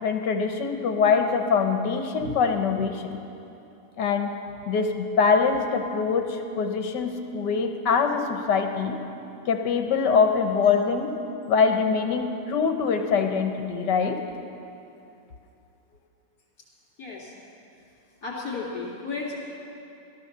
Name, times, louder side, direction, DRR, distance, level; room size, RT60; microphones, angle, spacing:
voice 1, 0.0-3.2 4.0-4.4 4.7-9.0 9.5-11.2 11.5-14.2, left 5 dB, 75° left, 5 dB, 1.7 m, -23 dB
voice 2, 17.0-17.3 18.2-19.4, left 4 dB, 60° left, -5 dB, 3.6 m, -33 dB
17.0 x 12.5 x 6.7 m, 2.7 s
omnidirectional pair, 1.9 m